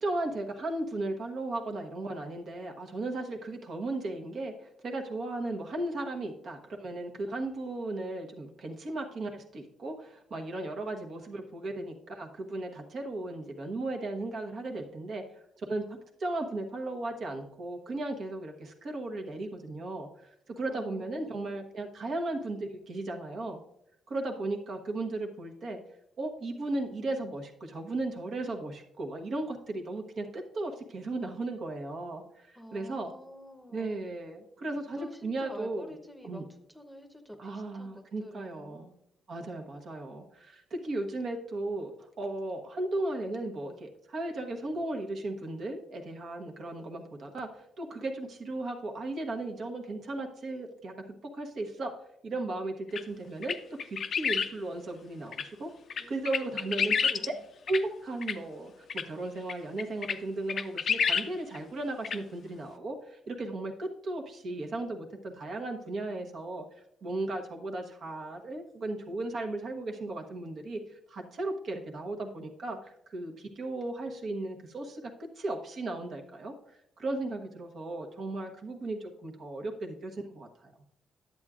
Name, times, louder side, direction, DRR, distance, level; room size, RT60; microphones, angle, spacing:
voice 1, 0.0-15.2 15.6-20.1 20.5-23.6 24.1-25.8 26.2-33.1 33.7-35.9 36.2-36.4 37.4-38.9 39.3-51.0 51.3-51.9 52.2-53.5 53.8-55.7 56.1-57.3 57.7-66.6 67.0-70.8 71.1-75.1 75.4-76.5 77.0-80.7, right 2 dB, 55° right, 2 dB, 1.1 m, -36 dB
voice 2, 20.7-21.5 32.6-34.0 34.9-38.8 56.0-57.4, equal, ahead, 5 dB, 0.9 m, -49 dB
sound 1, 53.0-53.1 53.4-54.5 55.3-55.4 55.9-57.3 57.7-57.8 58.2-58.3 58.9-59.0 59.5-59.6 59.8-60.2 60.5-61.3 61.5-61.6 62.0-62.2, left 6 dB, 55° left, 0.4 m, -29 dB
10.5 x 7.9 x 2.4 m, 0.75 s
cardioid pair, 90°, 0 cm